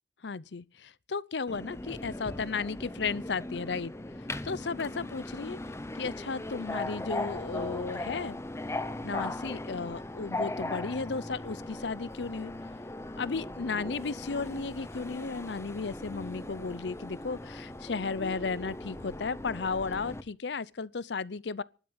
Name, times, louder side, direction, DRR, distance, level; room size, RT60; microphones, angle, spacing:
voice 1, 0.2-3.9 4.4-5.6 6.0-8.4 9.0-12.5 13.2-21.6, left 4 dB, 75° left, 0.7 m, -34 dB
Subway metro underground, 1.5-20.2, left 1 dB, 15° left, 0.9 m, -39 dB
12.0 x 10.0 x 9.6 m
head